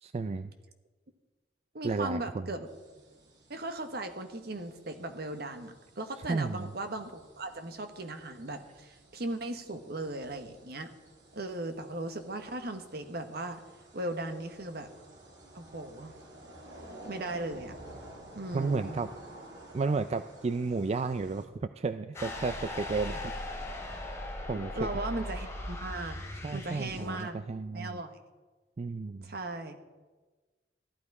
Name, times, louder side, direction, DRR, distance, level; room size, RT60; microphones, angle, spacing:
voice 1, 0.0-0.5 1.8-2.5 6.3-6.7 18.5-19.1 19.7-23.2 24.5-24.9 26.4-28.0 28.8-29.3, right 4 dB, 35° right, 11 dB, 0.4 m, -32 dB
voice 2, 1.7-2.7 3.5-10.9 11.3-13.6 13.9-14.9 15.5-16.1 17.0-17.7 18.3-19.0 24.7-26.2 26.5-27.4 27.7-28.1 29.2-29.8, right 2 dB, 60° right, 7 dB, 1.2 m, -37 dB
sound 1, 2.6-21.4, right 1 dB, 85° right, 3.1 m, -52 dB
sound 2, 22.1-27.2, left 1 dB, 15° left, 2.7 m, -39 dB
14.5 x 12.0 x 4.8 m, 1.3 s
head